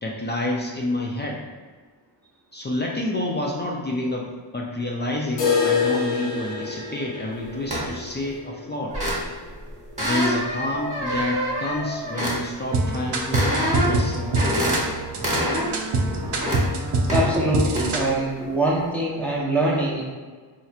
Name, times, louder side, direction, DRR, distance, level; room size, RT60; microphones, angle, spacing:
voice 1, 0.0-1.4 2.5-8.9 10.0-14.9, left 1 dB, 25° left, -1 dB, 0.4 m, -28 dB
sound 1, 5.4-11.2 11.5-11.6 11.9-12.0 12.5-12.6 13.5-13.6, left 5 dB, 65° left, 0.7 m, -28 dB
sound 2, 7.7-8.0 8.9-9.5 10.0-12.4 13.3-14.0 14.3-14.8 15.2-15.7 16.1-16.6 17.1-17.3 17.7-17.9, equal, 15° right, 1.1 m, -26 dB
sound 3, 12.7-18.1, right 2 dB, 65° right, 0.6 m, -25 dB
voice 2, 17.1-20.0, right 1 dB, 5° left, -6 dB, 0.7 m, -23 dB
4.4 x 2.9 x 2.4 m, 1.5 s
wide cardioid pair, 120°, 45 cm